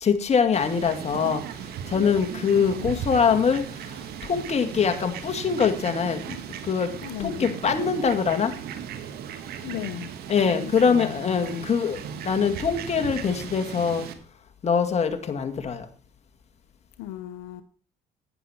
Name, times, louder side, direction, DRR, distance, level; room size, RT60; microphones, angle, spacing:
voice 1, 0.0-1.4 1.9-3.6 4.3-6.2 6.7-6.9 7.2-8.5 10.3-12.0 12.2-14.1 14.6-15.8, left 6 dB, 45° left, 2.1 m, -23 dB
Fowl, 0.5-14.1, right 8 dB, 75° right, 1.6 m, -37 dB
voice 2, 2.5-3.0 7.0-7.6 9.6-10.1 10.5-11.7 17.0-17.6, left 13 dB, 90° left, 0.8 m, -36 dB
11.0 x 9.8 x 4.4 m
supercardioid pair, 80°, 16 cm